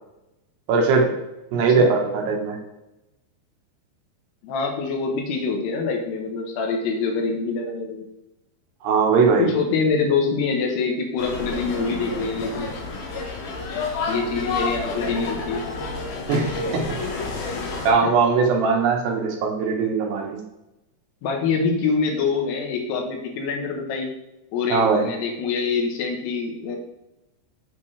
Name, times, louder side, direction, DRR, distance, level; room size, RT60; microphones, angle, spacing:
voice 1, 0.7-1.1 1.5-2.6 8.8-9.5 16.3-16.5 16.9-17.0 17.9-20.4 24.7-25.1, right 4 dB, 85° right, 1 dB, 3.3 m, -20 dB
voice 2, 4.4-8.1 9.4-12.7 14.1-15.7 18.0-18.1 21.2-24.1 24.5-26.8, left 4 dB, 80° left, 1 dB, 3.3 m, -25 dB
sound 1, 11.2-17.9, left 3 dB, 65° left, 2.2 m, -29 dB
8.4 x 5.9 x 3.3 m, 0.94 s
omnidirectional pair, 4.7 m